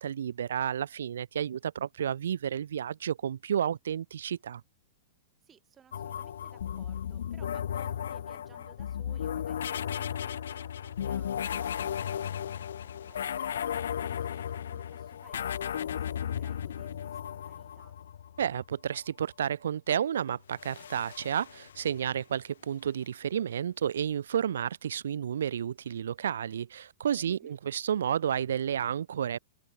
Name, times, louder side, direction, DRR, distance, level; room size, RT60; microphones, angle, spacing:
voice 1, 0.0-4.6 18.4-29.4, right 9 dB, 70° right, 0.3 m, -31 dB
voice 2, 5.4-18.0 27.3-27.6, right 8 dB, 20° right, 5.6 m, -60 dB
sound 1, 5.9-18.5 20.5-22.1, left 9 dB, 70° left, 0.4 m, -35 dB
open air
hypercardioid pair, 110°, 0 cm